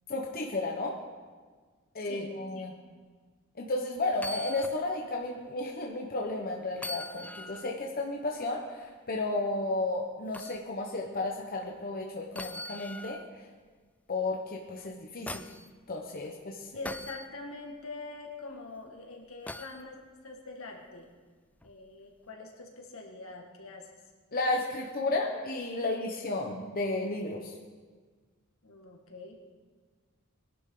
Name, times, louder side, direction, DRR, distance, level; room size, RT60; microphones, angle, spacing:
voice 1, 0.1-1.0 1.9-2.7 3.6-13.2 14.1-15.5 15.9-16.7 24.3-27.5, left 2 dB, 45° left, 0 dB, 1.1 m, -33 dB
voice 2, 2.0-2.6 16.7-21.1 21.6-23.9 28.6-29.4, left 3 dB, 70° left, 1 dB, 2.0 m, -44 dB
sound 1, 4.1-4.8 5.2-5.3 6.7-7.8 10.3-10.6 12.3-13.3 14.8-15.7 16.8-17.3 19.5-19.8 21.6-21.7, left 2 dB, 5° left, 0.3 m, -41 dB
20.5 x 11.5 x 3.9 m, 1.5 s
head